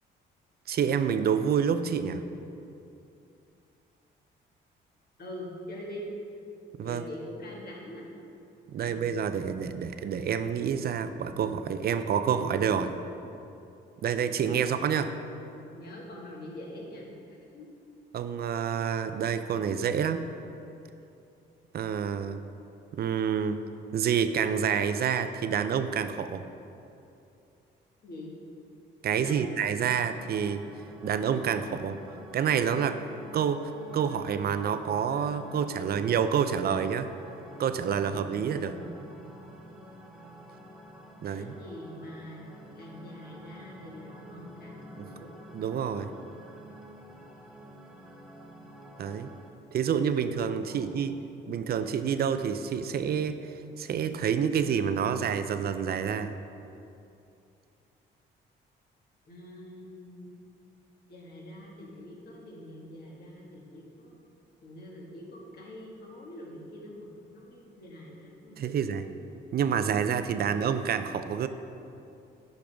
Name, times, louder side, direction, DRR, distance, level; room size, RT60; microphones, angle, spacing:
voice 1, 0.7-2.2 6.8-7.0 8.7-12.9 14.0-15.1 18.1-20.3 21.7-22.4 22.9-23.6 23.9-26.4 29.0-30.6 31.0-32.0 32.3-33.0 33.3-37.1 37.6-38.8 41.2-41.5 45.0-45.1 45.5-46.1 49.0-49.3 49.7-51.1 51.5-53.4 53.8-56.3 68.6-69.1 69.5-71.5, right 7 dB, 50° right, 10 dB, 0.5 m, -28 dB
voice 2, 5.2-6.1 6.8-8.1 8.8-9.1 14.3-14.7 15.7-17.1 17.5-17.7 28.0-28.3 29.1-29.9 38.3-38.8 41.2-45.3 50.7-51.1 59.3-60.4 61.1-64.1 64.6-68.8, left 1 dB, 50° left, -3 dB, 1.8 m, -44 dB
sound 1, 29.9-49.5, equal, ahead, 0.9 m, -49 dB
10.0 x 5.3 x 3.5 m, 2.7 s
cardioid pair, 90°, 20 cm